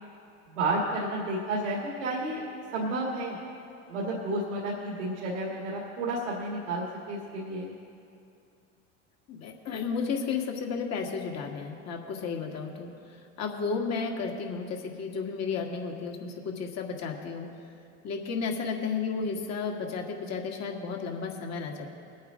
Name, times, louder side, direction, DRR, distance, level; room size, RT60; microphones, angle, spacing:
voice 1, 0.5-2.4 2.7-3.4 3.9-7.7, right 2 dB, 85° right, -3 dB, 2.0 m, -31 dB
voice 2, 9.3-17.5 18.0-21.9, left 5 dB, 50° left, 1 dB, 2.0 m, -33 dB
21.5 x 8.5 x 3.7 m, 2.5 s
hypercardioid pair, 85°, 35 cm